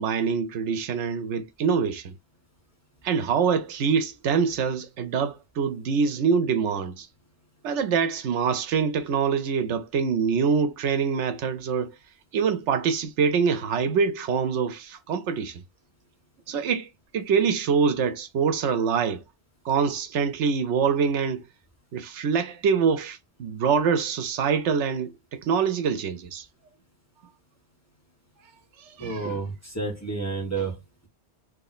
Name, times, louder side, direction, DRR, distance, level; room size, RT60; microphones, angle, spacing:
voice 1, 0.0-2.2 3.0-7.1 7.6-11.9 12.3-15.6 16.5-19.2 19.6-21.4 21.9-26.5 28.8-29.4, right 6 dB, 80° right, 0.9 m, -25 dB
voice 2, 29.0-30.8, right 3 dB, 15° left, 1.4 m, -30 dB
3.1 x 2.7 x 4.0 m
omnidirectional pair, 1.2 m